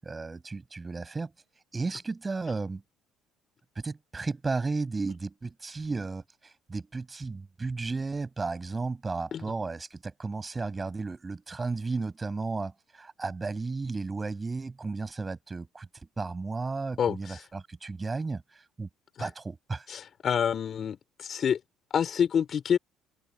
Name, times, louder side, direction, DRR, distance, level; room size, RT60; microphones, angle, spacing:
voice 1, 0.0-1.3 1.7-2.8 3.8-15.9 16.2-18.4 18.8-18.9 19.2-19.9, right 3 dB, 25° right, 7.8 m, -34 dB
voice 2, 17.0-17.4 19.2-19.3 19.9-21.6 21.9-22.8, left 8 dB, 50° left, 4.6 m, -28 dB
supercardioid pair, 70°, 0 cm